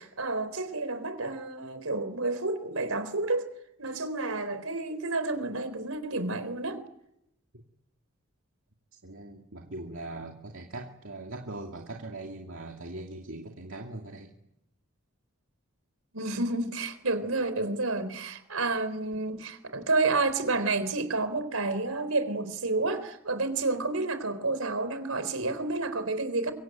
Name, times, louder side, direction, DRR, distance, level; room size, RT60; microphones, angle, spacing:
voice 1, 0.0-3.5 3.8-6.8 16.1-26.5, right 3 dB, 90° right, 3.9 m, -30 dB
voice 2, 9.0-14.3, right 2 dB, 65° right, 2.7 m, -41 dB
25.0 x 24.0 x 9.1 m
head